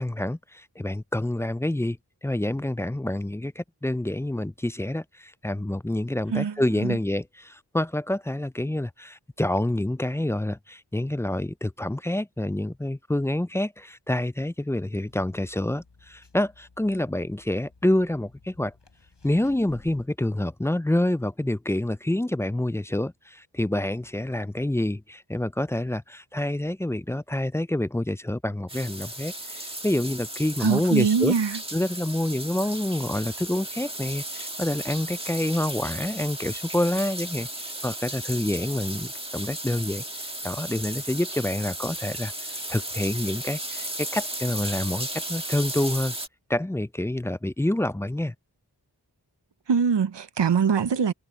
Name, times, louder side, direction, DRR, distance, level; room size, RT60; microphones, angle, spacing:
voice 1, 0.0-18.7 19.2-31.3 31.7-37.5 37.8-40.0 40.4-46.1 46.5-48.3, left 1 dB, 5° left, 0.3 m, -27 dB
voice 2, 6.3-7.0 30.6-31.6 49.7-51.1, right 6 dB, 90° right, 0.8 m, -23 dB
sound 1, 15.1-20.1, left 3 dB, 90° left, 7.7 m, -55 dB
sound 2, 28.7-46.3, right 1 dB, 15° right, 1.7 m, -35 dB
wide cardioid pair, 45°, 41 cm